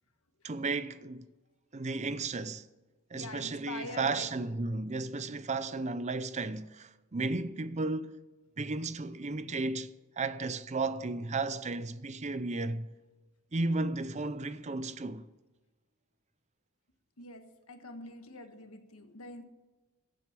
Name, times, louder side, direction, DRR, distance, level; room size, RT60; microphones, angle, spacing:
voice 1, 0.4-1.3 1.7-2.7 3.1-8.2 8.6-12.9 13.5-15.3, right 3 dB, 35° right, 0.6 m, -34 dB
voice 2, 3.1-4.3 17.2-19.4, left 2 dB, 80° left, 1.5 m, -44 dB
15.0 x 7.8 x 7.5 m
head